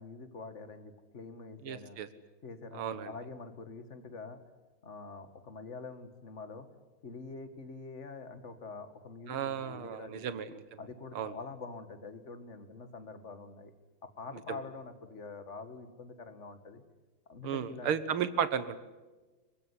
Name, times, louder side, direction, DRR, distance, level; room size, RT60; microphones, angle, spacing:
voice 1, 0.0-2.0 2.4-4.4 4.8-6.7 7.0-10.3 10.8-13.7 14.2-16.8 17.3-17.9, left 4 dB, 35° left, 9 dB, 1.9 m, -45 dB
voice 2, 1.6-2.1 2.7-3.1 9.3-10.8 11.1-11.3 14.5-14.6 17.4-18.8, right 8 dB, 80° right, 14 dB, 2.1 m, -34 dB
24.0 x 20.5 x 9.8 m, 1.2 s
omnidirectional pair, 2.4 m